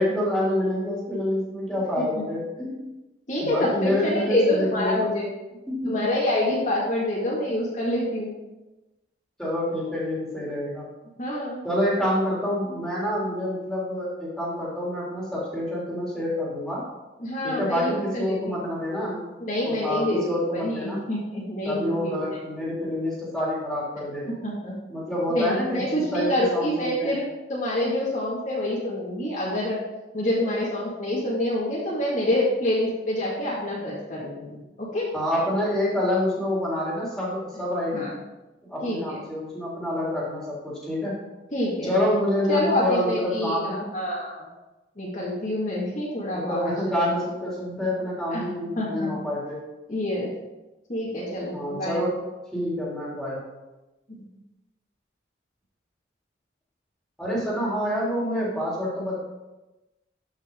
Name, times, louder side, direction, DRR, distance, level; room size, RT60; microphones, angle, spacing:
voice 1, 0.0-2.9 3.4-5.1 5.7-6.1 6.5-6.6 9.4-10.9 11.6-16.8 17.4-19.2 19.6-21.0 21.6-24.3 24.9-27.2 35.1-38.1 38.7-41.2 41.8-43.8 46.3-49.6 51.5-53.4 57.2-59.2, left 1 dB, ahead, -6 dB, 3.4 m, -27 dB
voice 2, 3.3-5.3 5.9-8.3 11.2-11.7 17.2-18.4 19.4-22.2 24.4-24.7 25.3-27.2 27.5-29.8 30.1-35.1 37.9-38.1 38.8-39.2 41.5-42.0 42.5-44.5 45.0-46.8 48.3-48.5 48.8-49.1 49.9-50.3 50.9-52.0 54.1-54.3, left 1 dB, 40° left, -6 dB, 2.1 m, -27 dB
13.0 x 6.1 x 3.8 m, 1.0 s
head